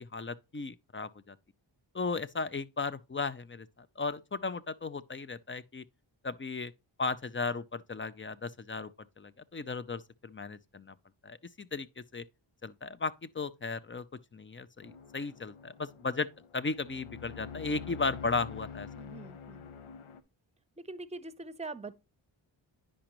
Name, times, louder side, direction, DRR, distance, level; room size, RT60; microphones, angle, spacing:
voice 1, 0.0-1.4 1.9-3.7 4.0-5.8 6.2-6.7 7.0-8.9 9.2-11.0 11.2-12.2 12.6-14.0 14.3-18.9, left 4 dB, 25° left, 0.6 m, -36 dB
sound 1, 14.8-20.2, left 7 dB, 80° left, 0.8 m, -46 dB
voice 2, 19.0-19.7 20.8-22.0, right 3 dB, 15° right, 0.8 m, -43 dB
10.0 x 5.1 x 3.0 m
cardioid pair, 40°, 49 cm